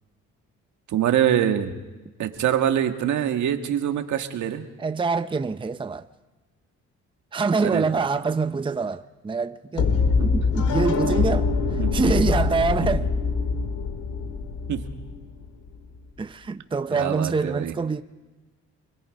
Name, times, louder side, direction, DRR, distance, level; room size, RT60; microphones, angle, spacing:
voice 1, 0.9-1.7 2.2-4.6 7.6-7.9 10.2-10.3 11.8-12.0 14.7-14.8 16.9-17.7, right 10 dB, 75° right, 1.8 m, -24 dB
voice 2, 4.8-6.1 7.3-9.9 10.2-11.5 11.9-13.1 16.2-18.0, right 4 dB, 15° right, 0.7 m, -25 dB
sound 1, 9.8-15.7, left 4 dB, 85° left, 2.5 m, -24 dB
28.0 x 21.0 x 5.2 m
cardioid pair, 90°, 30 cm